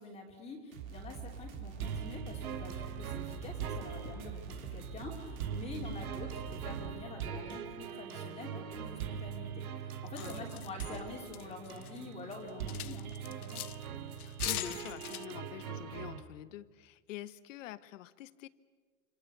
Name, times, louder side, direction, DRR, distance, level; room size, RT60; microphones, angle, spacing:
voice 1, 0.0-13.6, left 3 dB, 15° left, -1 dB, 2.9 m, -47 dB
sound 1, 0.7-6.9, right 6 dB, 70° right, 4.3 m, -45 dB
sound 2, 1.8-16.2, right 8 dB, 90° right, 2.5 m, -42 dB
sound 3, 10.2-12.0 12.3-13.9 14.2-15.3, left 15 dB, 85° left, 0.8 m, -41 dB
voice 2, 10.2-10.6 14.2-18.5, left 14 dB, 60° left, 15 dB, 1.2 m, -47 dB
28.0 x 27.5 x 6.8 m, 1.5 s
supercardioid pair, 160°, 42 cm